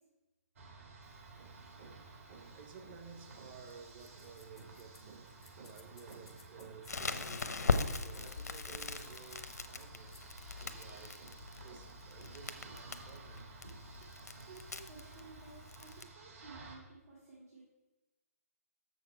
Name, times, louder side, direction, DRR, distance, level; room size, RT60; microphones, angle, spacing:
sound 1, 0.6-16.8, right 3 dB, 55° right, 1.8 m, -54 dB
voice 1, 1.3-14.1, right 5 dB, 40° right, 0.9 m, -54 dB
sound 2, 3.7-10.3, left 4 dB, 5° left, 0.5 m, -61 dB
Crackle, 6.9-16.0, left 4 dB, 90° left, 0.7 m, -40 dB
voice 2, 14.5-17.6, right 4 dB, 75° right, 2.4 m, -54 dB
7.1 x 6.5 x 4.6 m
hypercardioid pair, 150°, 9 cm